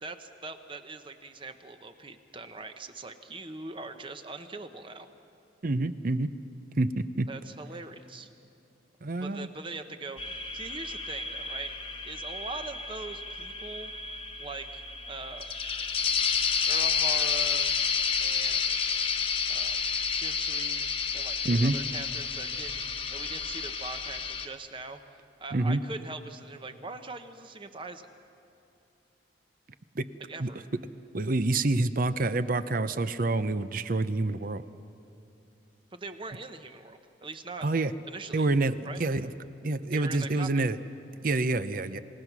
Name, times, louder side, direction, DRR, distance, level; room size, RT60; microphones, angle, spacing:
voice 1, 0.0-5.1 7.3-8.3 9.2-11.7 12.0-13.9 14.4-15.5 16.6-17.7 18.2-18.9 19.5-28.1 30.3-30.6 35.9-37.7 38.1-38.5 38.8-39.0 39.9-40.6, right 3 dB, 25° right, 8 dB, 1.0 m, -42 dB
voice 2, 5.6-6.3 6.8-7.3 9.0-9.5 21.4-21.8 25.5-25.8 30.0-30.1 30.4-30.5 31.1-34.6 37.6-37.9 38.3-39.3 39.6-40.8 41.2-42.0, right 2 dB, 50° right, 13 dB, 0.7 m, -27 dB
sound 1, 10.2-24.5, left 6 dB, 30° left, 1.0 m, -30 dB
28.0 x 17.5 x 6.1 m, 2.8 s
head